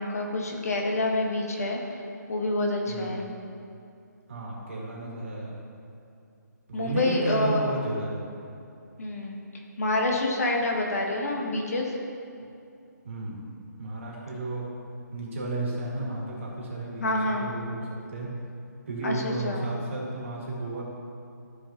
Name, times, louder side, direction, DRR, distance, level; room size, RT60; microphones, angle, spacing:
voice 1, 0.0-1.8 2.3-3.2 6.7-7.6 9.0-9.4 9.8-12.0 17.0-17.5 19.0-19.6, left 2 dB, 50° left, 0 dB, 1.3 m, -27 dB
voice 2, 2.9-3.3 4.3-5.6 6.7-8.1 13.0-13.4 13.8-14.7 15.1-18.3 18.9-20.8, right 2 dB, 40° right, -4 dB, 1.9 m, -33 dB
14.5 x 4.8 x 2.9 m, 2.6 s
hypercardioid pair, 175°, 10 cm